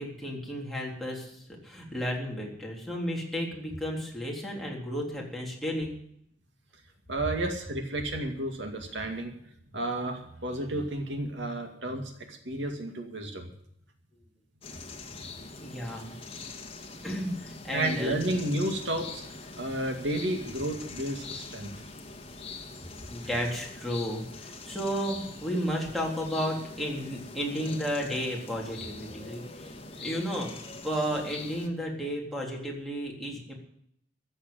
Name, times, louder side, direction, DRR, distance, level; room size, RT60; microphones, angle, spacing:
voice 1, 0.0-5.9 15.6-16.2 17.0-18.2 23.1-29.7 30.0-30.5 30.8-33.5, equal, ahead, -3 dB, 3.6 m, -33 dB
voice 2, 7.1-9.3 9.7-13.5 17.7-21.7, right 1 dB, 80° right, 4 dB, 2.3 m, -32 dB
sound 1, 14.6-31.7, left 3 dB, 30° left, 1.8 m, -43 dB
14.5 x 7.9 x 9.3 m, 0.70 s
head